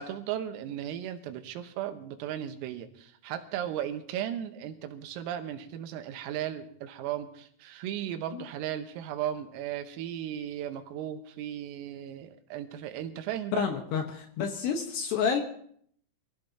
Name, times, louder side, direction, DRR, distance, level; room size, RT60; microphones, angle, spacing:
voice 1, 0.0-13.6, right 10 dB, 85° right, 7 dB, 3.8 m, -36 dB
voice 2, 13.5-15.4, left 6 dB, 70° left, 4 dB, 2.8 m, -29 dB
25.5 x 16.0 x 2.9 m, 0.63 s
omnidirectional pair, 6.0 m